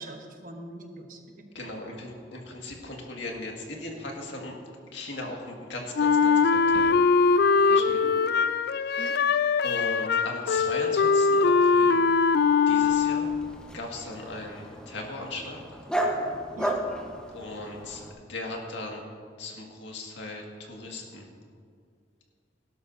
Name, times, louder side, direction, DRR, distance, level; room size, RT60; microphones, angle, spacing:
voice 1, 0.0-2.1 7.9-8.1 9.0-9.2 16.5-16.8, right 1 dB, 50° right, 4 dB, 1.1 m, -43 dB
voice 2, 1.5-4.5 4.9-6.9 7.5-8.0 8.8-9.3 9.6-12.1 12.7-13.4 13.7-15.6 17.3-19.0 19.4-21.3, left 2 dB, 80° left, 0 dB, 1.9 m, -38 dB
Wind instrument woodwind instrument, 6.0-13.5, left 5 dB, 60° left, 0.4 m, -22 dB
Dog, 12.8-18.1, right 1 dB, 5° left, 1.0 m, -34 dB
17.0 x 12.0 x 2.7 m, 2.2 s
head